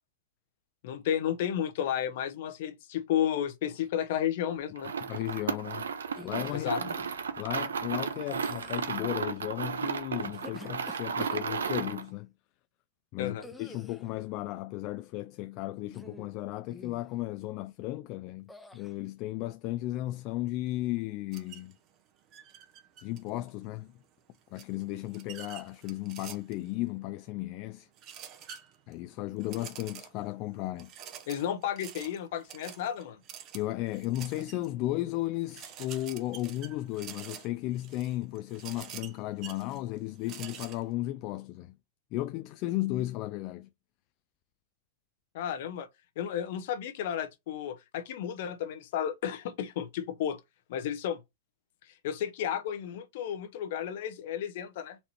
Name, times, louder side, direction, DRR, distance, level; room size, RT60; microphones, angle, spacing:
voice 1, 0.8-4.9 6.5-6.8 13.2-13.4 31.3-33.2 45.3-45.9 46.2-50.4 50.7-51.2 52.0-55.0, left 9 dB, 60° left, 0.8 m, -32 dB
sound 1, 4.8-12.1, right 6 dB, 85° right, 0.6 m, -34 dB
voice 2, 5.0-5.9 6.2-6.9 7.4-12.3 13.1-21.7 23.0-24.0 24.5-27.9 28.9-30.9 33.5-41.8 42.1-43.7, left 16 dB, 45° left, 0.3 m, -35 dB
sound 2, 6.1-6.8 8.2-8.9 10.1-11.9 13.4-14.1 15.9-16.4 16.7-17.1 18.5-18.9, left 2 dB, 5° left, 0.8 m, -48 dB
sound 3, 21.3-21.7 22.3-23.5 24.6-26.7 28.0-28.9 29.4-30.3 30.8-34.7 35.1-35.2 35.5-40.8, right 9 dB, 40° right, 0.8 m, -47 dB
4.2 x 2.9 x 4.3 m
hypercardioid pair, 110°, 0 cm